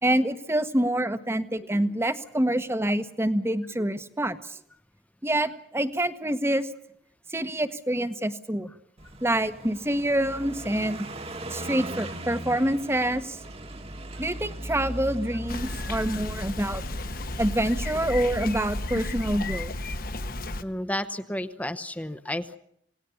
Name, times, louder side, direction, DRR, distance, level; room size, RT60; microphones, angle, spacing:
voice 1, 0.0-4.6 5.2-6.7 7.3-8.7 9.2-11.1 11.5-13.4 14.2-16.8 17.4-19.7, right 1 dB, 15° right, 11 dB, 1.2 m, -26 dB
Car passing by, 9.0-17.4, right 1 dB, 35° right, 1.6 m, -39 dB
Bicycle, 15.5-20.6, left 2 dB, 50° left, 1.2 m, -33 dB
voice 2, 20.6-22.6, left 1 dB, 10° left, 10 dB, 0.9 m, -32 dB
27.5 x 18.5 x 7.1 m, 0.70 s
head